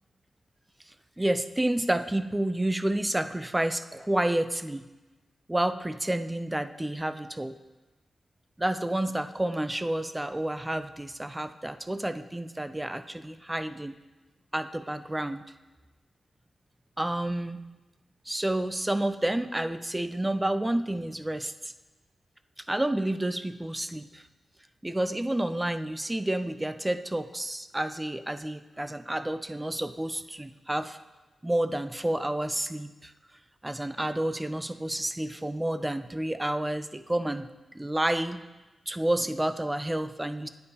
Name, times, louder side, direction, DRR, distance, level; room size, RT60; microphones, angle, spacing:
voice 1, 1.2-4.8 5.5-7.6 8.6-14.0 14.5-15.4 17.0-17.6 18.3-21.7 22.7-24.2 24.8-31.0 31.4-33.1 33.6-37.5 37.7-38.4 38.9-40.5, right 1 dB, 10° right, 10 dB, 0.3 m, -30 dB
9.5 x 8.7 x 2.8 m, 1.1 s
wide cardioid pair, 120°, 0 cm